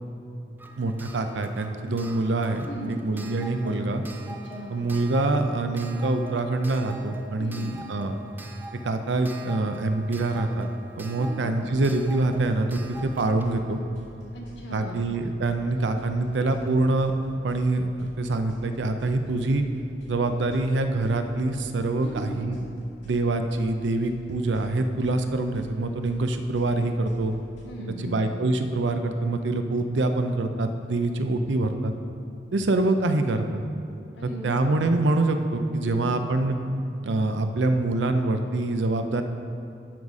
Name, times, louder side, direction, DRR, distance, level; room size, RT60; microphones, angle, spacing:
Clock, 0.6-15.2 16.3-16.4 16.7-16.8, right 2 dB, 10° right, 0.4 m, -44 dB
voice 1, 0.8-2.7 3.0-4.0 4.7-8.2 8.8-10.7 11.0-13.8 14.7-17.1 17.4-19.6 20.1-22.6 23.0-27.4 28.0-31.9 32.5-33.6 34.2-36.6 37.0-39.2, right 2 dB, 70° right, 7 dB, 0.5 m, -25 dB
voice 2, 2.6-3.0 4.4-4.7 7.4-7.6 11.1-11.5 14.3-15.1 22.0-22.4 27.6-28.2 34.1-34.5 35.8-36.1, right 1 dB, 65° left, -2 dB, 1.6 m, -38 dB
sound 1, 11.7-27.6, equal, 85° left, 2.1 m, -50 dB
12.0 x 4.1 x 4.8 m, 2.5 s
head